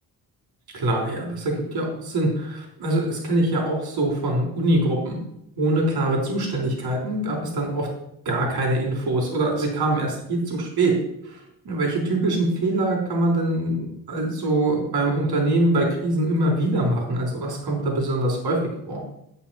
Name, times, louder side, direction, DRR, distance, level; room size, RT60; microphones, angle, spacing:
voice 1, 0.7-5.2 5.6-7.9 8.3-10.9 11.2-11.4 11.6-18.6 18.9-19.0, right 1 dB, 70° right, 0 dB, 3.8 m, -23 dB
9.8 x 5.5 x 5.7 m, 0.78 s
cardioid pair, 120°, 38 cm